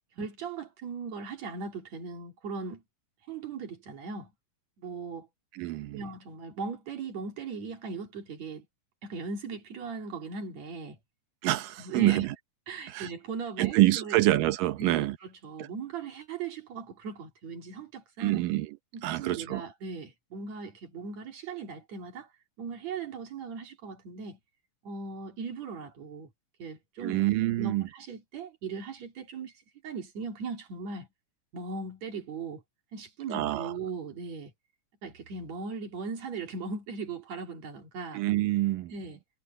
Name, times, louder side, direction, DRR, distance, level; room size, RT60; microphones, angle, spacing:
voice 1, 0.2-2.8 3.3-4.3 4.8-5.3 5.9-8.7 9.0-11.0 11.8-12.3 12.7-14.2 14.8-18.4 18.9-22.3 22.6-24.4 24.8-26.3 26.6-27.2 27.6-29.5 29.8-31.1 31.5-32.6 32.9-34.5 35.0-38.2 38.9-39.2, right 4 dB, 55° right, 3.7 m, -38 dB
voice 2, 5.5-6.0 11.4-12.4 12.9-13.1 13.6-15.2 15.6-15.7 18.2-18.8 19.0-19.6 27.0-27.9 33.3-33.7 38.1-38.9, right 16 dB, 90° right, 2.6 m, -26 dB
omnidirectional pair, 3.7 m